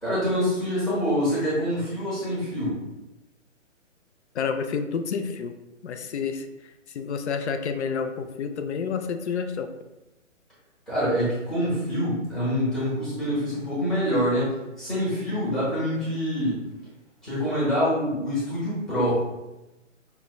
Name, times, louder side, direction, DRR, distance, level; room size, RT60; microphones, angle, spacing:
voice 1, 0.0-2.8 10.9-16.6 17.2-19.3, equal, ahead, -12 dB, 0.7 m, -25 dB
voice 2, 4.3-5.5 5.8-6.5 6.9-9.7, left 6 dB, 60° left, 7 dB, 0.5 m, -29 dB
5.4 x 2.2 x 2.2 m, 0.98 s
figure-of-eight pair, 140°, 38 cm